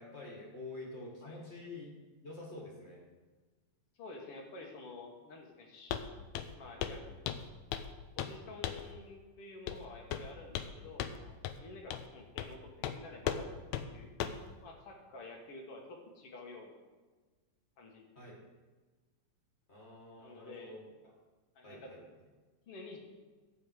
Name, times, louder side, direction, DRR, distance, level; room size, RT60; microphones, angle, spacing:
voice 1, 0.0-1.9 2.2-3.0 18.2-18.4 19.7-20.8 21.6-22.0, left 2 dB, 25° left, -2 dB, 2.0 m, -47 dB
voice 2, 3.9-5.9 6.5-7.1 8.2-14.1 14.6-16.7 17.8-18.1 20.2-20.8 21.6-21.9 22.7-23.0, left 3 dB, 55° left, 2 dB, 2.1 m, -50 dB
Walk footsteps, 5.9-6.1 6.3-6.6 6.8-7.0 7.3-7.9 8.2-8.4 8.6-8.9 9.7-9.8 10.1-10.7 11.0-11.2 11.4-11.6 11.9-12.1 12.4-12.5 12.8-13.0 13.3-13.4 13.7-13.9 14.2-14.4, left 10 dB, 80° left, 1.8 m, -37 dB
12.5 x 8.4 x 4.9 m, 1.3 s
omnidirectional pair, 3.6 m